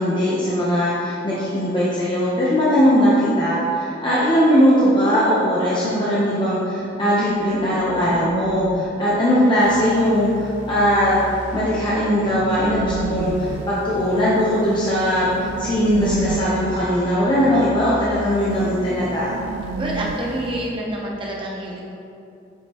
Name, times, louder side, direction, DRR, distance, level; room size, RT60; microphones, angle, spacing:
voice 1, 0.0-11.2 11.5-19.4, equal, 25° left, -9 dB, 0.9 m, -19 dB
sound 1, 5.8-10.7 11.8-17.3 17.6-17.7 18.1-21.0, right 4 dB, 90° right, 0.3 m, -34 dB
sound 2, 9.6-20.7, right 1 dB, 70° right, 1.0 m, -37 dB
voice 2, 19.8-21.9, right 1 dB, 25° right, -3 dB, 0.9 m, -27 dB
7.9 x 5.1 x 3.0 m, 2.6 s
head